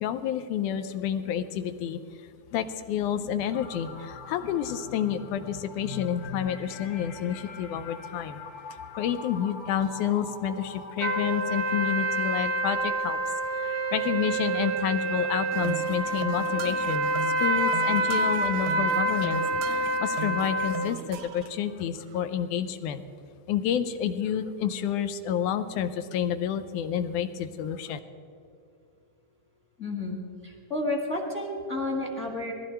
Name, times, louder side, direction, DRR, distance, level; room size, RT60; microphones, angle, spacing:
voice 1, 0.0-2.0 2.5-8.4 9.0-13.2 13.6-17.1 17.4-23.0 23.5-28.0, left 9 dB, 80° left, 10 dB, 2.0 m, -29 dB
sound 1, 3.5-21.8, left 3 dB, 55° left, 2.8 m, -47 dB
sound 2, 11.0-20.9, right 2 dB, 65° right, 1.3 m, -27 dB
sound 3, 15.5-21.5, right 10 dB, 80° right, 2.1 m, -38 dB
voice 2, 29.8-32.5, left 2 dB, 30° left, 1 dB, 1.4 m, -31 dB
19.5 x 14.5 x 4.4 m, 2.5 s
omnidirectional pair, 3.8 m